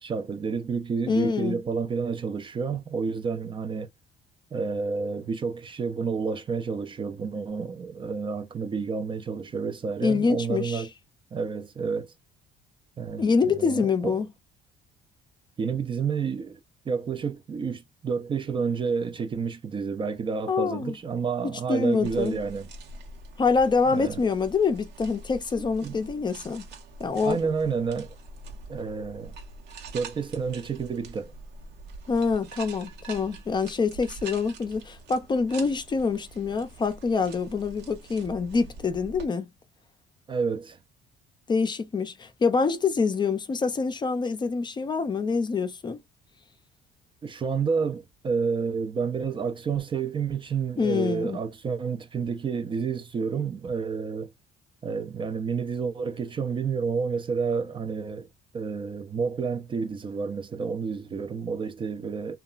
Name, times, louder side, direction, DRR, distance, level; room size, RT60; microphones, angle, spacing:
voice 1, 0.0-3.9 4.5-10.9 11.3-12.1 13.0-14.2 15.6-16.6 16.9-22.7 23.9-24.2 25.8-26.0 27.2-28.2 28.7-29.4 29.9-31.3 40.3-40.8 47.2-54.3 54.8-58.3 58.5-62.4, right 5 dB, 30° right, 0.4 m, -30 dB
voice 2, 1.1-1.6 10.0-10.8 13.2-14.3 20.5-21.0 21.7-22.4 23.4-26.6 27.0-27.4 32.1-39.5 41.5-46.0 50.8-51.4, left 5 dB, 25° left, 0.5 m, -25 dB
sound 1, 22.0-39.3, right 3 dB, 85° right, 0.9 m, -45 dB
2.9 x 2.3 x 2.3 m
cardioid pair, 110°, 17 cm